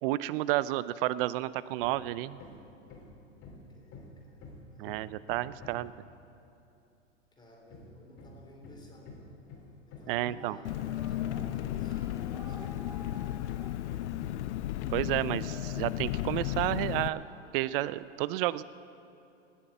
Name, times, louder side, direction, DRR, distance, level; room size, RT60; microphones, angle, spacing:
voice 1, 0.0-2.4 4.8-5.9 10.1-10.6 14.9-17.2 17.5-18.6, right 16 dB, 50° right, 18 dB, 0.5 m, -31 dB
Hammer, 1.8-2.1 2.4-6.0 7.7-14.6 15.2-17.1, left 3 dB, 35° left, 3.2 m, -50 dB
voice 2, 3.7-4.9 7.3-9.4 9.9-13.1, left 1 dB, 10° left, 0 dB, 2.7 m, -55 dB
sound 1, 10.4-18.0, right 2 dB, 10° right, 0.7 m, -52 dB
Engine, 10.6-17.1, left 14 dB, 65° left, 0.5 m, -34 dB
19.0 x 7.3 x 8.1 m, 2.8 s
hypercardioid pair, 120°, 38 cm